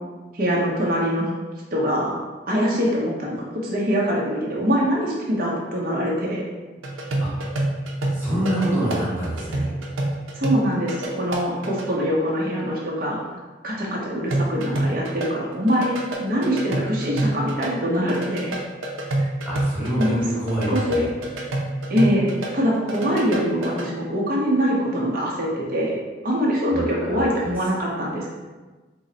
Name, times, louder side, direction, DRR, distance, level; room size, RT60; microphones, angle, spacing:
voice 1, 0.3-1.3 1.7-2.2 2.5-3.3 3.6-6.4 10.3-13.2 13.6-18.5 19.2-19.3 20.0-20.2 20.7-21.0 21.9-26.0 26.2-28.3, equal, 45° right, -4 dB, 0.8 m, -23 dB
sound 1, 6.8-11.9 14.3-17.7 17.9-22.5 22.7-23.9, right 1 dB, 90° right, 0.6 m, -27 dB
voice 2, 8.1-9.7 19.4-21.0 26.7-26.8 27.1-27.2, right 1 dB, 10° right, -10 dB, 1.3 m, -25 dB
3.8 x 2.1 x 3.8 m, 1.2 s
head